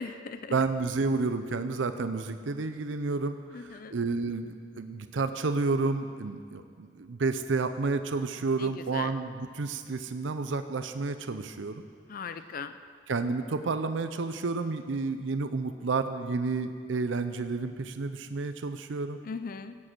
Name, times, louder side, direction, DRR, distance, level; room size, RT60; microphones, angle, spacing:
voice 1, 0.0-0.5 3.5-4.0 8.6-9.1 12.1-12.7 19.2-19.8, left 5 dB, 50° left, 11 dB, 0.4 m, -39 dB
voice 2, 0.5-11.8 13.1-19.2, right 3 dB, 80° right, 9 dB, 0.6 m, -30 dB
16.0 x 7.6 x 6.0 m, 2.1 s
head